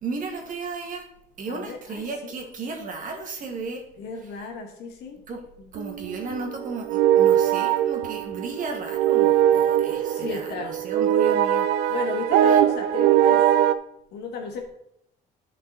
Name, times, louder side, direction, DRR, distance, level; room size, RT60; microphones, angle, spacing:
voice 1, 0.0-1.0 1.4-3.8 5.3-5.4 5.7-11.9 12.5-12.6, right 4 dB, 50° right, 2 dB, 1.9 m, -34 dB
voice 2, 1.5-2.3 4.0-5.3 5.6-5.7 10.1-10.8 11.9-13.5 14.1-14.7, left 4 dB, 75° left, 2 dB, 2.0 m, -34 dB
sound 1, 5.8-13.7, right 11 dB, 85° right, 0.5 m, -21 dB
10.5 x 5.4 x 4.1 m, 0.77 s
cardioid pair, 110°, 17 cm